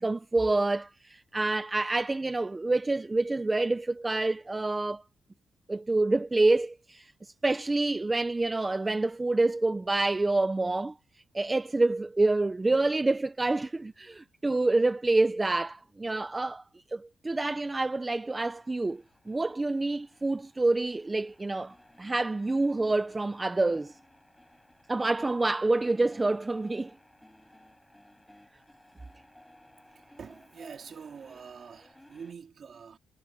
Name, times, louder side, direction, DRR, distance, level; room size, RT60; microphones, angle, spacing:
voice 1, 0.0-5.0 5.7-10.9 11.3-16.6 16.9-23.9 24.9-26.9, right 2 dB, 15° right, 0.6 m, -27 dB
sound 1, 18.2-32.3, left 1 dB, 5° left, 5.8 m, -58 dB
voice 2, 29.9-33.0, right 6 dB, 45° right, 4.0 m, -46 dB
cardioid pair, 130°, 0 cm